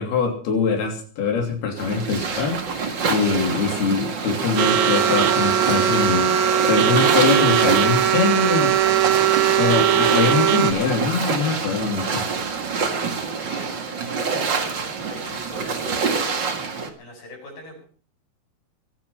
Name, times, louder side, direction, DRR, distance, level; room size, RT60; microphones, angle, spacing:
voice 1, 0.0-8.8 9.6-12.3, left 5 dB, 90° left, 3 dB, 5.0 m, -23 dB
sound 1, 1.8-16.9, right 5 dB, 40° right, 2.0 m, -27 dB
sound 2, 4.6-10.7, right 9 dB, 65° right, 2.0 m, -19 dB
voice 2, 12.8-16.3 17.0-17.8, left 1 dB, 65° left, 1 dB, 9.5 m, -41 dB
24.0 x 9.2 x 5.8 m, 0.44 s
omnidirectional pair, 4.3 m